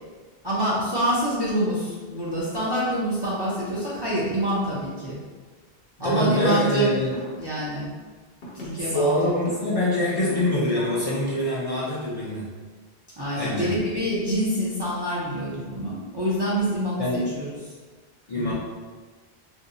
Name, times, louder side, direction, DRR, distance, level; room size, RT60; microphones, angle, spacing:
voice 1, 0.4-5.2 6.0-6.9 7.4-7.9 8.5-9.3 13.2-17.6 18.4-18.5, equal, 30° right, -8 dB, 0.6 m, -26 dB
voice 2, 6.0-7.1 8.8-12.4 13.3-13.7 17.0-17.2 18.3-18.5, left 1 dB, 40° left, -8 dB, 0.6 m, -24 dB
sound 1, 7.1-7.4 8.4-8.7 9.5-9.6 10.3-10.5 10.9-11.2, right 2 dB, 65° left, 1.0 m, -39 dB
2.7 x 2.2 x 3.8 m, 1.4 s
omnidirectional pair, 1.1 m